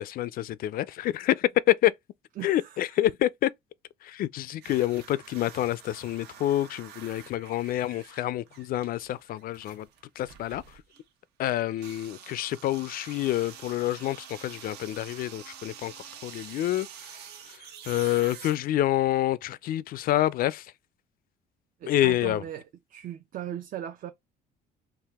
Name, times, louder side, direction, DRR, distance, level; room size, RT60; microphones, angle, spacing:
voice 1, 0.0-1.9 2.4-3.5 4.0-9.9 10.2-10.8 11.4-15.9 16.2-20.7 21.9-22.4, left 14 dB, 60° left, 0.4 m, -27 dB
voice 2, 2.4-2.9 21.8-22.6 22.9-24.1, right 11 dB, 55° right, 0.6 m, -38 dB
sound 1, 4.6-11.1 11.7-19.2, right 8 dB, 75° right, 1.1 m, -47 dB
4.7 x 2.5 x 3.5 m
cardioid pair, 110°, 17 cm